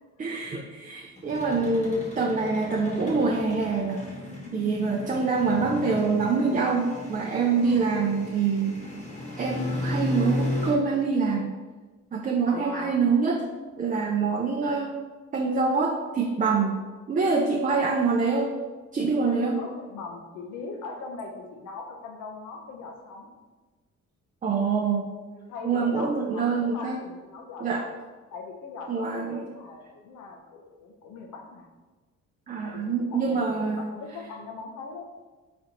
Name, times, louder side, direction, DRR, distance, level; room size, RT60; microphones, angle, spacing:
voice 1, 0.2-4.1 4.5-8.7 9.4-11.5 12.1-13.4 13.8-15.0 15.3-16.8 17.1-18.6 18.9-19.6 24.4-25.1 25.6-27.0 27.6-27.8 28.9-29.5 32.5-33.8, right 4 dB, 25° right, 1 dB, 0.4 m, -25 dB
sound 1, 1.2-10.7, left 1 dB, 25° left, 1.1 m, -34 dB
voice 2, 7.4-8.0 12.4-13.0 19.3-23.3 25.3-27.9 28.3-31.7 32.6-35.1, left 4 dB, 85° left, 2 dB, 0.8 m, -41 dB
4.2 x 3.8 x 2.8 m, 1.3 s
cardioid pair, 90°, 30 cm